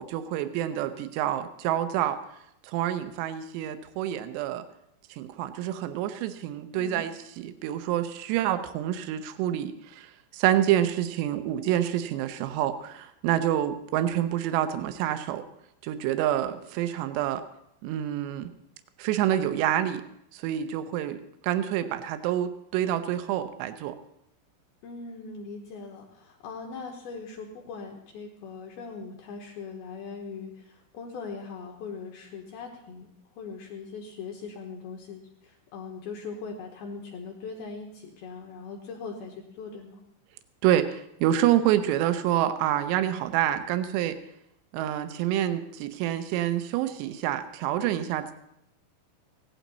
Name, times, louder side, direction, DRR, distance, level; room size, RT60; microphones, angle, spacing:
voice 1, 0.0-2.2 2.6-4.6 5.2-15.4 15.8-17.4 17.8-18.5 19.0-20.0 20.3-24.0 40.6-44.2 44.7-48.3, right 11 dB, 80° right, 10 dB, 2.6 m, -27 dB
voice 2, 6.7-7.1 24.8-33.1 33.4-40.0, left 4 dB, 75° left, 1 dB, 2.3 m, -40 dB
16.5 x 11.5 x 4.1 m, 0.77 s
omnidirectional pair, 5.7 m